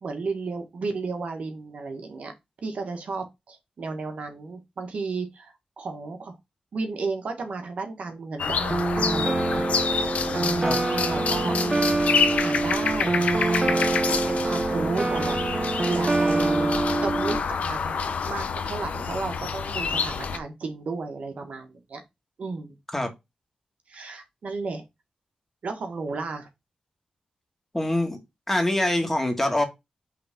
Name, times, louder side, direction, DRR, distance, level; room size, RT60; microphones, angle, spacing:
voice 1, 0.0-2.3 2.6-6.4 6.7-9.7 10.3-11.6 12.4-15.4 15.9-16.7 17.0-18.0 18.2-22.0 22.4-22.7 23.9-24.8 25.6-26.5, right 4 dB, 70° right, 1.4 m, -33 dB
sound 1, 8.4-20.4, left 5 dB, 80° left, 0.8 m, -28 dB
sound 2, 8.7-17.4, right 2 dB, 30° right, 0.6 m, -25 dB
voice 2, 27.7-28.2 28.5-29.6, left 1 dB, 10° left, 1.8 m, -24 dB
5.6 x 3.4 x 5.0 m
wide cardioid pair, 95°, 2 cm